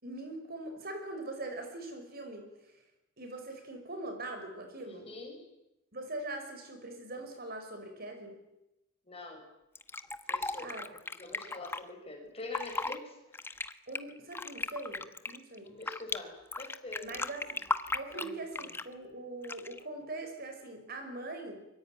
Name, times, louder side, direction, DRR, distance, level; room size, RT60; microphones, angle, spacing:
voice 1, 0.0-2.5 3.2-5.1 5.9-8.4 10.6-10.9 13.9-15.8 17.0-17.6 17.9-21.6, right 2 dB, 50° right, 6 dB, 5.4 m, -42 dB
voice 2, 4.9-5.4 9.1-9.5 10.3-13.2 15.7-17.2 17.6-17.7 18.1-18.7, left 2 dB, 30° left, 2 dB, 7.0 m, -45 dB
Fill (with liquid), 9.8-11.8 12.4-13.0 13.3-16.2 16.5-18.9 19.4-19.8, left 2 dB, 10° left, 1.0 m, -36 dB
24.0 x 23.0 x 9.2 m, 0.92 s
head